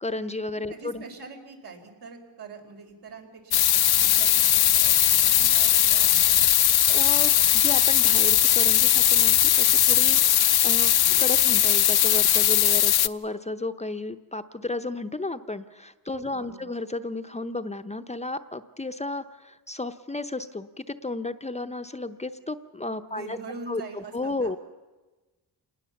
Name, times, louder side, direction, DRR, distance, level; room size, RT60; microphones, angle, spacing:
voice 1, 0.0-1.0 6.9-10.9 11.2-23.4 23.7-24.6, left 2 dB, 15° left, 10 dB, 0.7 m, -33 dB
voice 2, 0.7-3.7 3.9-4.9 5.2-6.4 16.2-16.7 23.1-24.6, right 4 dB, 75° right, 2 dB, 4.6 m, -43 dB
sound 1, 3.5-13.1, left 12 dB, 70° left, 0.7 m, -19 dB
27.0 x 19.5 x 7.1 m, 1.2 s
wide cardioid pair, 110°, 39 cm